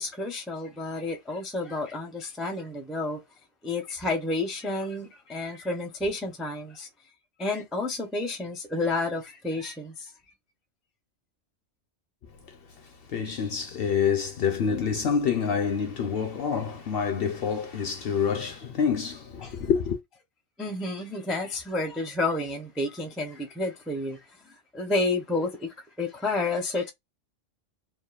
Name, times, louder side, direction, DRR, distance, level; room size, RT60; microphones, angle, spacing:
voice 1, 0.0-3.2 3.6-6.9 7.4-10.1 19.4-19.6 20.6-26.9, left 2 dB, ahead, 0.3 m, -30 dB
voice 2, 13.1-20.0, left 6 dB, 60° left, 0.6 m, -27 dB
2.8 x 2.3 x 2.3 m
omnidirectional pair, 1.3 m